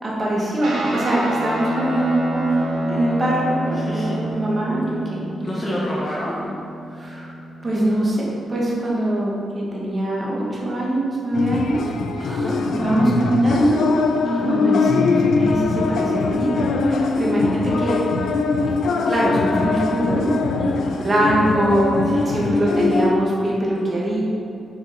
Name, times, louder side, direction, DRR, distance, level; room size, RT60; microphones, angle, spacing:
voice 1, 0.0-5.3 5.7-5.9 7.0-7.3 7.6-11.8 12.3-12.4 12.7-13.9 14.2-18.0 19.1-20.3 20.9-22.0 22.2-24.2, right 1 dB, 25° right, -5 dB, 1.9 m, -22 dB
Guitar, 0.6-8.2, right 1 dB, 70° right, 2.0 m, -29 dB
voice 2, 2.5-3.0 3.7-4.2 5.4-6.5 12.2-12.6 20.6-21.0 22.0-22.2, left 1 dB, 20° left, -5 dB, 1.0 m, -31 dB
sound 1, 11.3-23.2, left 4 dB, 70° left, 0.6 m, -22 dB
8.7 x 7.0 x 4.3 m, 2.6 s
wide cardioid pair, 170°, 0 cm